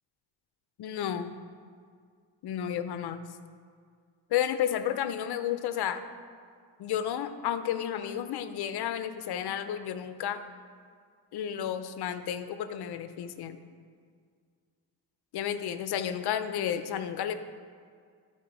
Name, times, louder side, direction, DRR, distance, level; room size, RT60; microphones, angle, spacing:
voice 1, 0.8-1.3 2.4-3.2 4.3-6.0 6.8-10.4 11.3-13.6 15.3-17.4, left 9 dB, 65° left, 11 dB, 0.6 m, -32 dB
12.0 x 4.1 x 4.9 m, 2.1 s
cardioid pair, 100°, 41 cm